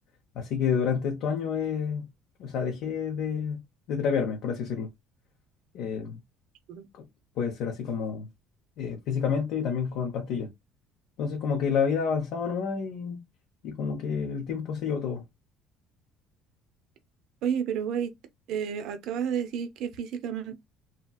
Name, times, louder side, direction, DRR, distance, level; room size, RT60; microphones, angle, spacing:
voice 1, 0.3-2.0 2.4-3.6 3.9-4.9 5.7-6.2 6.9-7.0 7.4-8.3 8.8-10.5 11.2-13.2 13.6-15.2, left 6 dB, 60° left, 0.7 m, -29 dB
voice 2, 17.4-18.1 18.5-20.6, right 8 dB, 60° right, 0.6 m, -31 dB
2.9 x 2.8 x 2.3 m
cardioid pair, 160°, 0 cm